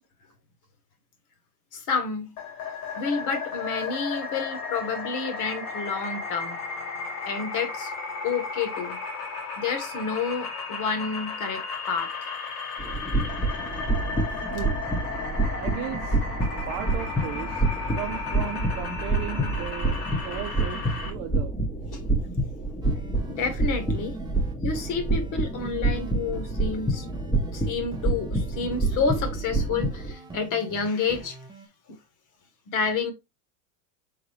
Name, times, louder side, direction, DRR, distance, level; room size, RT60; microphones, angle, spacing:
voice 1, 1.7-2.3 2.9-6.6 7.3-7.9 8.2-9.0 9.6-12.3 21.9-22.0 23.3-24.1 24.6-27.1 27.5-31.4 32.7-33.1, left 5 dB, 40° left, 1.3 m, -29 dB
sound 1, 2.4-21.1, left 4 dB, 80° left, 2.6 m, -34 dB
sound 2, 12.8-30.1, right 2 dB, 5° left, 1.0 m, -28 dB
voice 2, 15.6-16.2 16.7-17.6 17.9-21.6, right 12 dB, 50° right, 0.7 m, -36 dB
sound 3, 22.8-31.7, right 4 dB, 10° right, 0.7 m, -44 dB
4.1 x 3.8 x 3.2 m
supercardioid pair, 115°, 46 cm